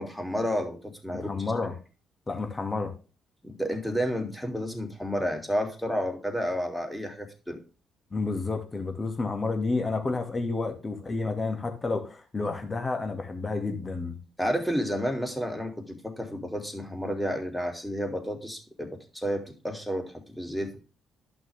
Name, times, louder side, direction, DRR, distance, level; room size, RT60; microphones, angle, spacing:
voice 1, 0.0-1.4 3.4-7.6 14.4-20.8, equal, 5° left, 4 dB, 3.1 m, -31 dB
voice 2, 1.1-1.7 2.3-2.9 8.1-14.2, left 3 dB, 30° left, 5 dB, 2.5 m, -30 dB
11.5 x 6.2 x 3.6 m, 0.34 s
supercardioid pair, 60°, 0 cm